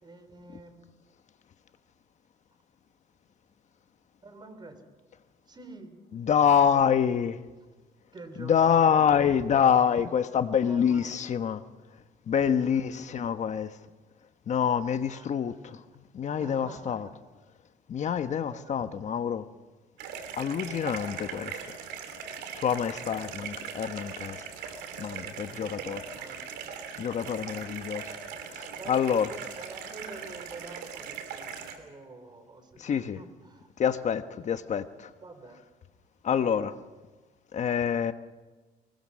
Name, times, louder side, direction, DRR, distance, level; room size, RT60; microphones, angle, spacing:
voice 1, 0.0-0.9 4.2-4.8 5.5-5.9 8.1-9.6 10.6-11.2 12.6-13.4 15.1-15.4 15.7-15.8 16.4-17.1 18.5-18.9 22.9-23.4 25.6-25.9 26.1-26.4 28.8-33.7 35.2-35.6, right 3 dB, 25° right, 8 dB, 3.7 m, -47 dB
voice 2, 6.1-7.4 8.4-11.6 12.3-13.7 14.5-15.8 16.1-17.1 17.9-19.5 20.4-21.6 22.5-24.4 25.0-26.0 27.0-28.0 28.5-29.3 32.8-33.2 33.8-35.1 36.2-36.7 37.5-38.1, left 8 dB, 45° left, 10 dB, 1.1 m, -26 dB
sound 1, 20.0-31.8, right 7 dB, 85° right, 2.9 m, -40 dB
23.0 x 20.0 x 6.4 m, 1.3 s
cardioid pair, 110°, 17 cm